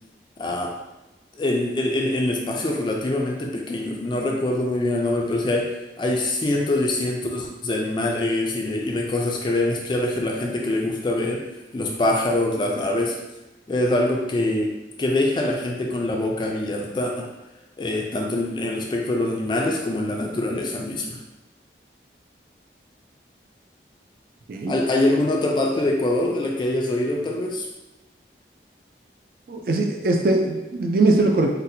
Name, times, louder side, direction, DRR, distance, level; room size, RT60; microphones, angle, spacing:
voice 1, 0.4-0.8 1.4-11.5 11.7-13.2 13.7-14.7 15.0-17.3 17.8-21.2 24.7-27.7, left 1 dB, 25° left, 0 dB, 0.3 m, -24 dB
voice 2, 29.5-31.5, right 2 dB, 55° right, 2 dB, 0.3 m, -21 dB
4.0 x 2.1 x 2.7 m, 0.99 s
head